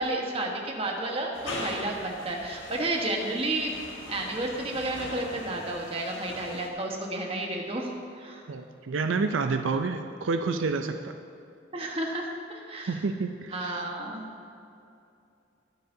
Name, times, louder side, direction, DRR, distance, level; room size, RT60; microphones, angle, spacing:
voice 1, 0.0-3.7 4.1-8.4 11.7-13.0 13.5-14.2, right 2 dB, 30° right, 0 dB, 1.3 m, -31 dB
sound 1, 1.3-6.7, left 2 dB, 85° left, 1.6 m, -40 dB
voice 2, 8.5-11.1 12.9-13.8, right 4 dB, 85° right, 6 dB, 0.5 m, -29 dB
21.0 x 8.1 x 2.7 m, 2.6 s
head